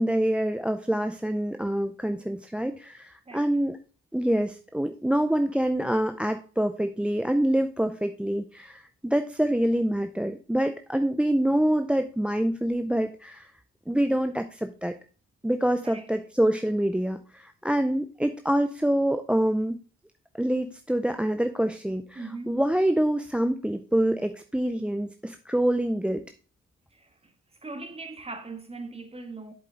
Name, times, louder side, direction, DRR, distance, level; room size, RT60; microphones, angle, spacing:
voice 1, 0.0-3.8 4.1-13.5 13.9-14.9 15.4-19.8 20.3-26.2, right 1 dB, 5° right, 0.5 m, -26 dB
voice 2, 22.1-22.6 26.9-27.3 27.6-29.5, right 3 dB, 20° right, 1.6 m, -40 dB
7.9 x 7.4 x 3.7 m
cardioid pair, 90°, 30 cm